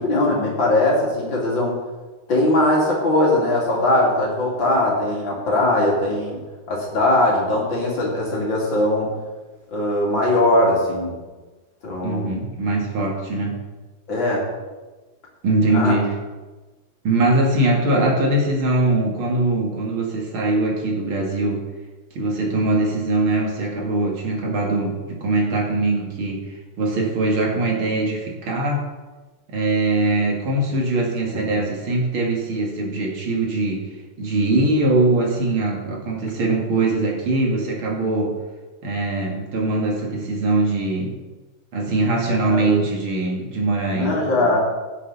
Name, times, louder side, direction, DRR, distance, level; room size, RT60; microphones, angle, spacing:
voice 1, 0.0-1.8 2.3-6.4 6.7-9.1 9.7-11.1 11.8-12.4 14.1-14.4 15.7-16.0 31.3-31.5 42.5-42.8 43.9-44.6, left 1 dB, 60° left, -3 dB, 3.7 m, -20 dB
voice 2, 12.0-13.6 15.4-16.1 17.0-21.6 22.1-28.8 29.5-33.9 34.2-38.3 38.8-41.1 41.7-44.1, right 2 dB, 70° right, -1 dB, 3.0 m, -22 dB
16.5 x 8.3 x 4.2 m, 1.2 s
omnidirectional pair, 2.4 m